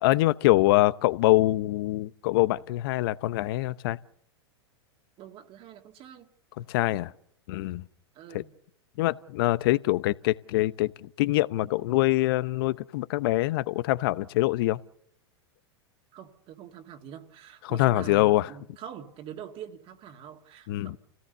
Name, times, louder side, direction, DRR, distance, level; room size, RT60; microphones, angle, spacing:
voice 1, 0.0-4.0 6.6-7.1 7.5-7.8 8.3-8.4 9.0-14.8 17.6-18.5 20.7-21.0, left 17 dB, 60° left, 0.9 m, -24 dB
voice 2, 5.2-6.3 8.1-8.5 16.1-21.0, right 9 dB, 40° right, 2.2 m, -44 dB
28.5 x 17.5 x 6.9 m
hypercardioid pair, 100°, 14 cm